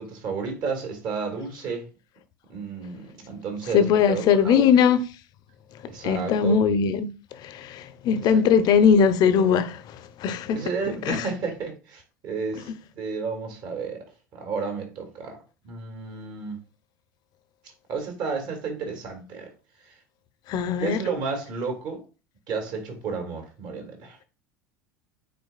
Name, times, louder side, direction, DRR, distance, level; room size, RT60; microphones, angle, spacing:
voice 1, 0.0-1.9 2.5-4.6 5.9-6.6 8.3-8.4 10.5-12.7 12.9-14.1 14.3-15.4 15.6-16.6 17.9-19.5 19.9-20.0 20.8-22.0 22.5-24.2, right 5 dB, 45° right, 2.2 m, -32 dB
voice 2, 3.7-5.0 6.0-7.1 7.4-9.8 10.2-10.6 11.1-11.3 20.5-21.0, left 7 dB, 45° left, 0.7 m, -20 dB
9.3 x 4.2 x 2.4 m
figure-of-eight pair, 75°, 10 cm